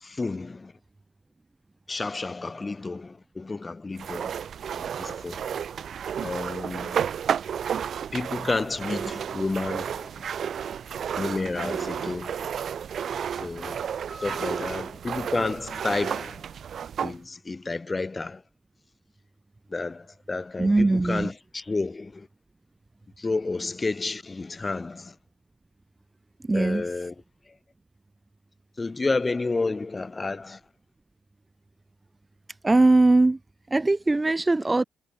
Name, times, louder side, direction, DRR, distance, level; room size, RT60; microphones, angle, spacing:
voice 1, 0.0-0.7 1.9-4.3 4.7-5.4 6.2-7.0 8.1-10.5 11.2-12.5 13.3-13.8 14.2-16.4 17.0-18.4 19.7-22.3 23.2-25.1 26.5-27.1 28.8-30.6, left 3 dB, 25° left, 1.4 m, -31 dB
sound 1, 4.0-17.2, right 8 dB, 55° right, 4.0 m, -32 dB
voice 2, 14.1-14.5 20.6-21.3 26.4-26.9 32.6-33.4 33.7-34.8, right 2 dB, 15° right, 1.1 m, -21 dB
cardioid pair, 90°, 0 cm